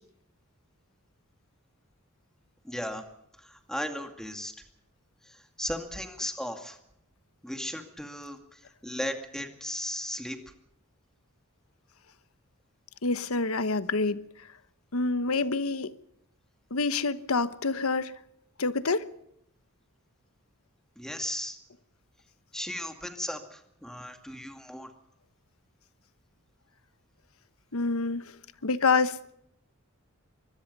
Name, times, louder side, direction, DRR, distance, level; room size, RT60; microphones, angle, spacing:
voice 1, 2.6-3.0 3.4-4.5 5.6-6.8 7.4-8.4 8.8-10.4 21.0-21.6 22.5-24.9, equal, 5° left, 2.3 m, -36 dB
voice 2, 13.0-14.2 14.9-15.9 16.7-18.1 18.6-19.1 27.7-28.2 28.6-29.2, left 3 dB, 90° left, 1.1 m, -27 dB
24.0 x 21.0 x 5.4 m
head